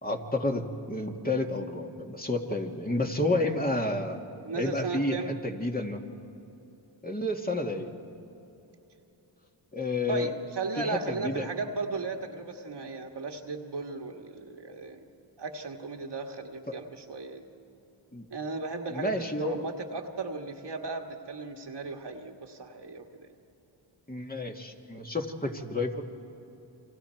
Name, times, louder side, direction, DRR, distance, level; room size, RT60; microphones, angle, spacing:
voice 1, 0.0-4.2 4.6-6.0 7.0-7.9 9.7-10.3 10.8-11.5 18.1-18.3 18.9-19.6 24.1-25.9, left 2 dB, 20° left, 1 dB, 2.1 m, -30 dB
voice 2, 4.4-5.3 10.1-15.0 15.4-17.4 18.3-19.1 19.4-23.3, right 3 dB, 55° right, 3 dB, 1.8 m, -36 dB
29.5 x 24.5 x 4.6 m, 2.9 s
cardioid pair, 60°, 48 cm